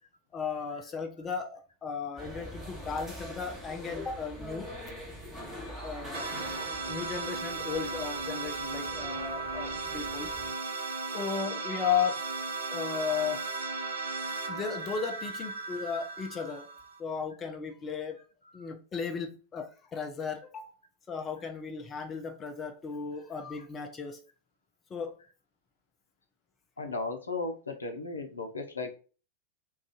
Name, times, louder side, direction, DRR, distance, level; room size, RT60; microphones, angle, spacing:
voice 1, 0.3-5.0 5.7-6.3 6.9-10.3 11.1-12.2 12.7-13.4 14.5-16.7 17.0-18.2 18.5-20.7 21.1-24.2 24.9-25.2, left 6 dB, 20° left, 0.4 m, -35 dB
sound 1, 2.2-10.5, equal, 5° right, 1.0 m, -44 dB
sound 2, 6.1-17.0, right 3 dB, 60° right, 0.5 m, -36 dB
voice 2, 13.7-14.1 18.4-18.7 26.8-29.0, left 3 dB, 75° left, 0.5 m, -36 dB
2.4 x 2.3 x 3.7 m
figure-of-eight pair, 90°, 0 cm